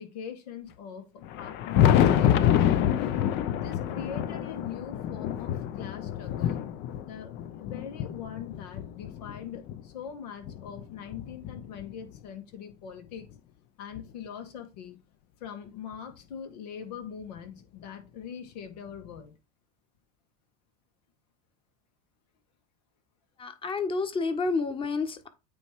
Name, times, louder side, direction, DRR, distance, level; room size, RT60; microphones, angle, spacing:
voice 1, 0.0-2.9 3.6-6.6 7.1-13.3 13.8-15.0 15.4-19.3, left 8 dB, 85° left, 1.9 m, -42 dB
Thunder, 1.2-9.8 10.4-12.2 13.3-13.4 14.0-14.1 15.9-16.0 17.4-17.5 19.1-19.2, left 10 dB, 60° left, 0.7 m, -27 dB
voice 2, 23.4-25.3, left 4 dB, 25° left, 1.3 m, -29 dB
8.7 x 3.2 x 4.7 m
supercardioid pair, 110°, 20 cm